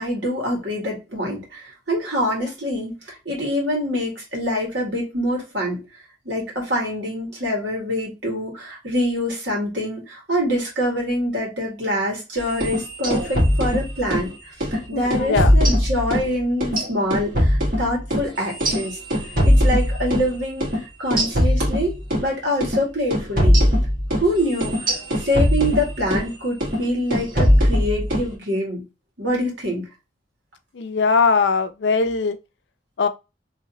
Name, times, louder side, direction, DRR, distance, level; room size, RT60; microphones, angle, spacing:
voice 1, 0.0-5.8 6.3-19.0 19.5-20.7 21.0-23.6 24.1-28.8 29.2-29.8, equal, 85° right, 1.9 m, -25 dB
sound 1, 12.5-14.3 14.6-14.8 15.1-16.3 16.6-20.3 20.6-20.8 21.1-22.3 22.6-22.8 23.1-26.3 26.6-26.8 27.1-28.3, equal, 50° right, 1.5 m, -20 dB
voice 2, 14.9-15.5 30.7-32.4 33.0-33.1, left 4 dB, 85° left, 0.5 m, -20 dB
3.1 x 2.9 x 2.7 m
head